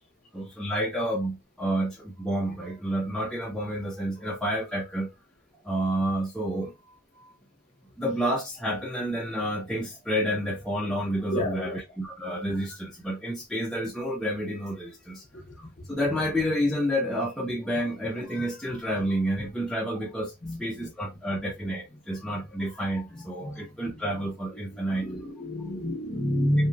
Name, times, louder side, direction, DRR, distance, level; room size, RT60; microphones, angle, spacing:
voice 1, 0.3-5.1 5.6-7.3 8.0-20.3 20.6-25.1, equal, 5° left, 0.3 m, -30 dB
voice 2, 11.3-11.8 15.3-15.9 20.4-20.9 23.1-23.7 24.1-24.2 24.7-26.7, equal, 35° left, 0.7 m, -30 dB
2.8 x 2.6 x 2.2 m
head